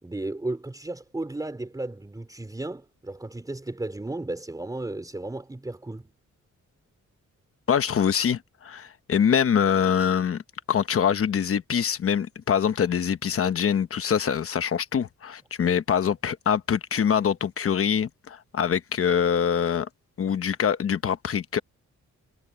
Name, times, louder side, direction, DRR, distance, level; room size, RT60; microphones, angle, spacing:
voice 1, 0.0-6.1, right 2 dB, 10° right, 4.1 m, -34 dB
voice 2, 7.7-10.4 10.7-19.9 20.2-21.6, left 8 dB, 50° left, 1.0 m, -24 dB
wide cardioid pair, 175°, 30 cm